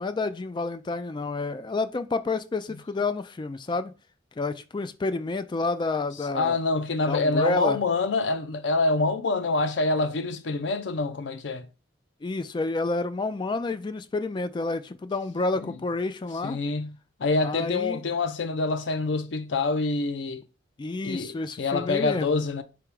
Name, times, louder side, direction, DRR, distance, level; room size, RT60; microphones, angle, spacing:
voice 1, 0.0-3.9 4.4-6.6 7.1-7.8 12.2-16.6 17.4-18.0 20.8-22.4, left 3 dB, 25° left, 0.3 m, -29 dB
voice 2, 6.3-11.7 15.6-15.7 16.4-20.4 21.0-22.6, left 3 dB, 85° left, 0.5 m, -26 dB
3.5 x 2.9 x 4.7 m
head